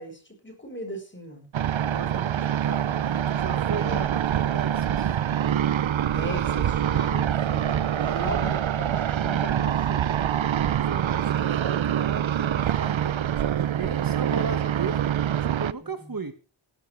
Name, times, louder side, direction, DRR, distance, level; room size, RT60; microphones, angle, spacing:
voice 1, 0.0-1.5 3.8-4.1 6.1-10.3 15.8-16.2, equal, 25° left, 4 dB, 7.9 m, -38 dB
sound 1, 1.5-15.7, right 10 dB, 75° right, 0.7 m, -25 dB
voice 2, 1.8-5.1 7.8-8.4 10.6-15.1 15.4-16.3, right 4 dB, 45° right, 9 dB, 1.7 m, -36 dB
17.0 x 13.0 x 3.4 m, 0.34 s
wide cardioid pair, 60°, 47 cm